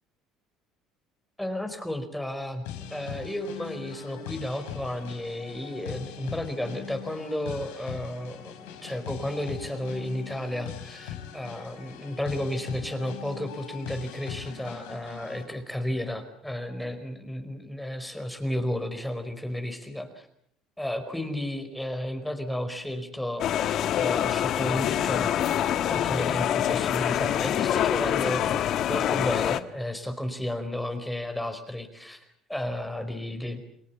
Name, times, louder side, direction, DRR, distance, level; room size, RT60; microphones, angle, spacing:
voice 1, 1.4-20.3 20.8-23.7 24.0-25.4 25.9-33.6, left 1 dB, 5° left, 7 dB, 4.8 m, -33 dB
sound 1, 2.6-15.5, left 9 dB, 85° left, 4.3 m, -41 dB
sound 2, 23.4-29.6, left 10 dB, 60° left, 1.3 m, -25 dB
29.5 x 21.0 x 7.1 m, 0.70 s
supercardioid pair, 85°, 0 cm